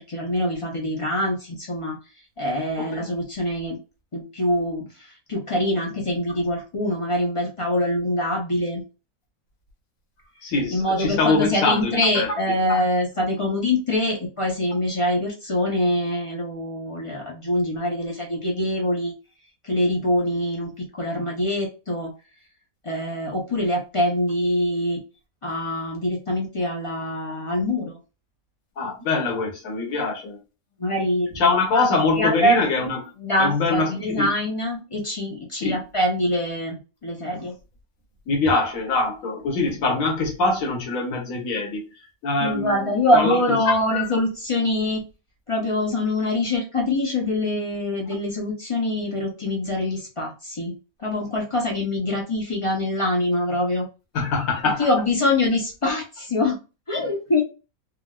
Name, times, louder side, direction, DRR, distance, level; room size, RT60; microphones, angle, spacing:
voice 1, 0.1-2.0 2.4-3.8 4.1-4.9 5.3-8.8 10.7-19.1 19.6-22.1 22.8-25.0 25.4-28.0 30.8-31.4 31.7-31.9 32.1-32.6 33.2-37.5 42.4-45.0 45.5-53.9 54.8-56.6 56.9-57.4, left 1 dB, 55° left, 0.3 m, -24 dB
voice 2, 10.4-12.3 12.7-12.8 28.8-30.4 31.3-33.1 33.4-34.3 35.6-35.8 38.3-41.8 42.2-43.4 43.7-44.0 54.1-54.9, left 3 dB, 70° left, 1.4 m, -23 dB
3.7 x 2.2 x 2.2 m
omnidirectional pair, 1.5 m